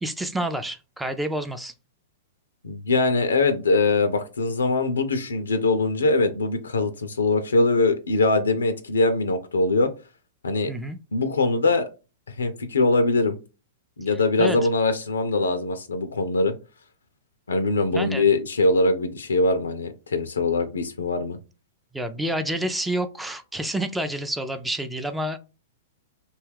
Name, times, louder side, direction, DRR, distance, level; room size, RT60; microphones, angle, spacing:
voice 1, 0.0-1.7 10.7-11.0 14.4-14.6 17.9-18.2 21.9-25.4, right 1 dB, 5° right, 0.4 m, -28 dB
voice 2, 2.6-9.9 10.4-10.7 11.1-11.9 12.3-13.4 14.0-16.5 17.5-21.4, left 3 dB, 85° left, 0.4 m, -22 dB
2.6 x 2.3 x 3.3 m
hypercardioid pair, 115°, 0 cm